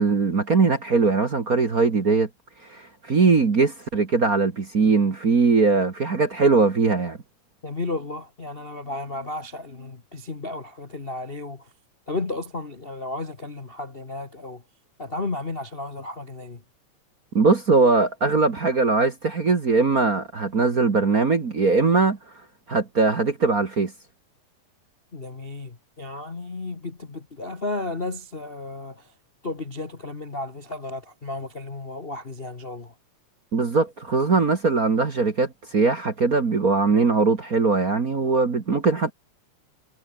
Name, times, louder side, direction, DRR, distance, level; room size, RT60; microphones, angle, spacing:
voice 1, 0.0-2.3 2.7-7.2 17.3-22.2 22.7-23.9 33.5-39.1, right 4 dB, 35° right, 1.8 m, -21 dB
voice 2, 7.6-11.7 12.1-14.6 15.0-16.6 25.1-29.1 29.4-32.9, left 2 dB, 25° left, 1.2 m, -33 dB
omnidirectional pair, 3.4 m